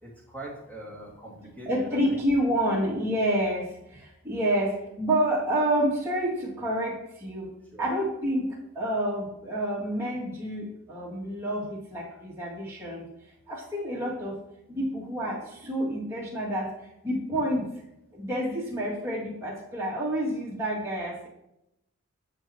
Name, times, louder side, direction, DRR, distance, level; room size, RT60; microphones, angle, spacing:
voice 1, 0.0-2.2 7.7-7.9, right 1 dB, 10° left, -5 dB, 2.4 m, -42 dB
voice 2, 1.7-7.5 7.8-13.1 13.5-14.4 14.7-16.7 17.0-17.7 18.1-21.3, right 1 dB, 10° right, -8 dB, 2.4 m, -28 dB
9.8 x 7.3 x 3.0 m, 0.85 s
head